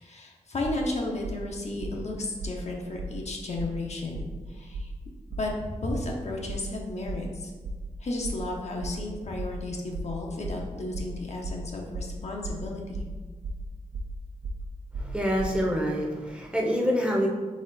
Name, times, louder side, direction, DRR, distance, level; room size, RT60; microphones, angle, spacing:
voice 1, 0.0-4.9 5.3-7.5 8.0-13.0, left 2 dB, 50° left, 0 dB, 0.7 m, -33 dB
sound 1, 0.6-0.9 1.2-1.5 1.8-2.1 2.4-2.6 3.0-3.2 3.6-3.8 4.1-4.4 4.7-5.0 5.3-5.6 5.9-6.1 6.5-6.7 7.1-7.3 7.6-7.9 8.2-8.5 8.8-9.1 9.4-9.6 9.9-10.2 10.4-10.7 10.9-11.2 11.4-11.7 11.9-12.2 12.4-12.7 12.9-13.2 13.4-13.7 13.9-14.2 14.4-14.7 14.9-15.6, right 2 dB, 75° right, 0.4 m, -35 dB
voice 2, 15.0-17.3, equal, 10° right, -2 dB, 0.7 m, -26 dB
4.1 x 3.0 x 3.9 m, 1.4 s
wide cardioid pair, 100°, 14 cm